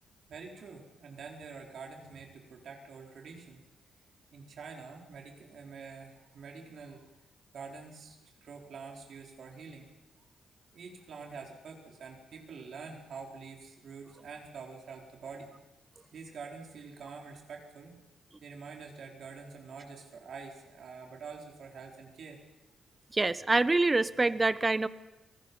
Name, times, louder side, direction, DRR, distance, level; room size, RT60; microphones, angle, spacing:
voice 1, 0.3-3.6 4.3-7.0 7.5-9.9 10.7-15.5 16.1-17.9 18.4-22.4, right 5 dB, 65° right, 1 dB, 4.3 m, -46 dB
voice 2, 23.1-24.9, right 2 dB, 25° right, 16 dB, 1.0 m, -26 dB
29.0 x 19.0 x 5.5 m, 1.0 s
supercardioid pair, 50°, 0 cm